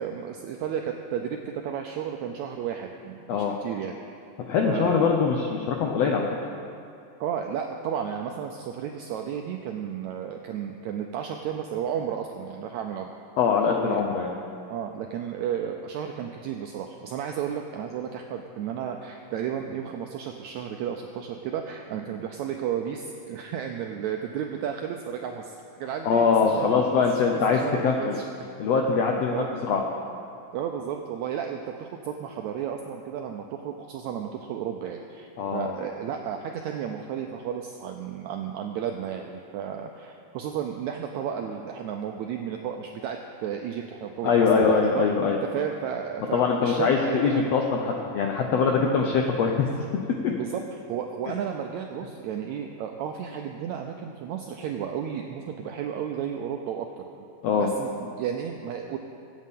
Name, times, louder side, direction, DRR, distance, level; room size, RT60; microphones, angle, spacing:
voice 1, 0.0-3.9 4.6-5.2 7.2-13.1 13.8-14.0 14.7-28.5 29.1-29.5 30.5-45.0 45.5-47.5 50.4-57.0 57.6-59.0, right 8 dB, 90° right, 3 dB, 1.6 m, -33 dB
voice 2, 4.5-6.3 13.4-14.3 26.0-28.2 28.6-29.8 35.4-35.7 44.2-45.4 46.3-49.7 57.4-57.7, left 5 dB, 80° left, 1 dB, 1.4 m, -23 dB
23.0 x 8.5 x 3.7 m, 2.6 s
omnidirectional pair, 3.9 m